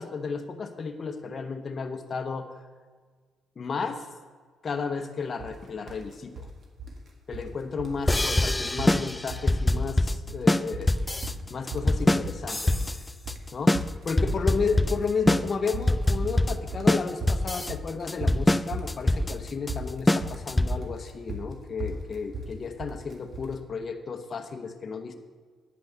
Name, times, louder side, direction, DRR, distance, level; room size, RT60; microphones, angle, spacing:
voice 1, 0.0-2.5 3.6-4.1 4.6-6.5 7.3-10.9 11.5-12.7 13.5-13.7 14.0-25.1, left 5 dB, 40° left, 5 dB, 1.0 m, -33 dB
sound 1, 5.4-5.6 5.9-6.5 6.8-7.5 7.8-8.0 8.3-8.5 8.8-9.5 9.8-10.4 10.7-23.5, right 1 dB, 45° right, 1.7 m, -37 dB
sound 2, 8.1-21.0, left 1 dB, 15° left, 0.3 m, -24 dB
9.6 x 5.3 x 8.0 m, 1.5 s
cardioid pair, 90°, 0 cm